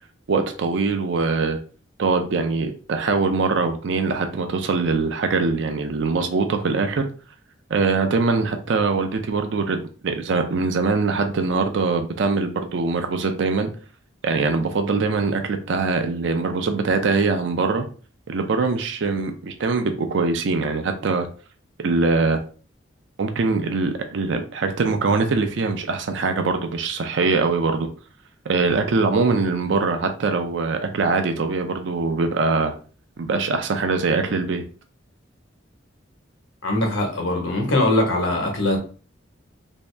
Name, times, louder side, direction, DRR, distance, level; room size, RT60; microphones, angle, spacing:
voice 1, 0.3-1.6 2.0-7.1 7.7-13.7 14.2-17.9 18.3-21.3 21.8-22.4 23.2-27.9 28.5-32.7 33.2-34.6, right 4 dB, 65° right, 0.4 m, -22 dB
voice 2, 36.6-38.8, left 1 dB, 90° left, 1.1 m, -21 dB
3.0 x 2.7 x 3.3 m
head